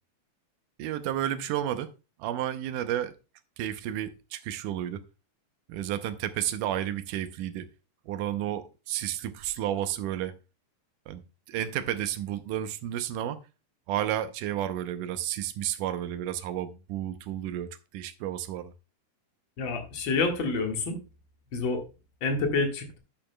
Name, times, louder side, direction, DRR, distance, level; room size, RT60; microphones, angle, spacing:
voice 1, 0.8-1.9 2.2-3.2 3.6-5.0 5.7-7.7 8.1-10.3 11.1-11.2 11.5-13.4 13.9-18.7, right 11 dB, 75° right, 2.1 m, -32 dB
voice 2, 19.6-21.0 21.5-21.8 22.2-23.0, left 3 dB, 45° left, 2.0 m, -28 dB
11.5 x 8.6 x 2.2 m
omnidirectional pair, 4.0 m